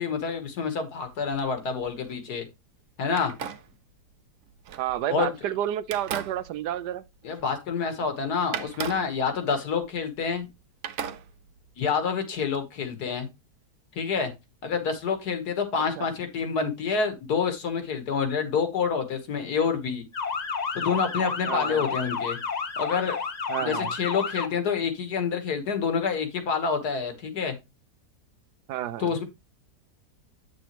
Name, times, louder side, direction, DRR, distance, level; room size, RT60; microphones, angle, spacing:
voice 1, 0.0-2.5 3.0-3.4 5.1-5.3 7.2-10.5 11.8-13.3 14.0-14.3 14.6-20.0 20.8-22.4 22.8-23.2 23.6-27.5 29.0-29.2, left 6 dB, 75° left, 1.9 m, -27 dB
sound 1, 1.0-2.2 3.1-5.4 5.8-7.7 8.0-8.1 8.5-10.5 10.8-11.8, right 8 dB, 65° right, 1.0 m, -39 dB
voice 2, 4.8-7.0 16.0-16.1 21.5-22.0 23.5-23.9 28.7-29.2, right 12 dB, 85° right, 1.3 m, -30 dB
Motor vehicle (road) / Siren, 20.1-24.5, left 5 dB, 45° left, 0.5 m, -31 dB
8.4 x 6.2 x 3.0 m
omnidirectional pair, 1.7 m